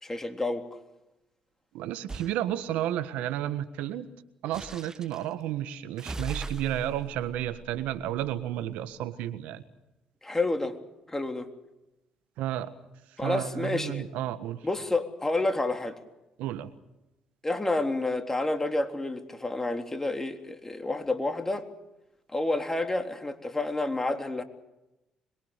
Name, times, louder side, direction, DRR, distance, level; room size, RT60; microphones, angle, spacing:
voice 1, 0.0-0.7 10.2-10.8 11.1-11.5 13.2-14.1 14.6-16.0 17.4-21.7 22.3-24.4, left 2 dB, 15° left, 6 dB, 3.5 m, -29 dB
voice 2, 1.7-4.1 4.4-9.6 12.4-12.7 13.2-14.6 16.4-16.7, right 12 dB, 75° right, 12 dB, 1.5 m, -32 dB
sound 1, 2.1-2.4 4.5-5.3 6.0-8.6, right 3 dB, 25° right, 1.1 m, -40 dB
26.0 x 22.5 x 6.8 m, 0.94 s
hypercardioid pair, 55°, 3 cm